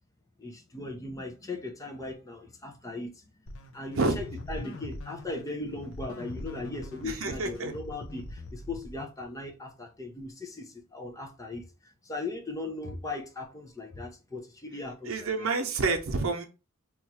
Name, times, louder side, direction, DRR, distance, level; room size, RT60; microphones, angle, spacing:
voice 1, 0.4-3.2 3.7-15.5, left 2 dB, 15° left, 0.5 m, -38 dB
sound 1, 3.5-9.3, left 2 dB, 65° left, 0.5 m, -42 dB
voice 2, 7.0-7.7 15.0-16.4, right 3 dB, 70° right, 0.7 m, -28 dB
3.0 x 2.4 x 4.1 m
head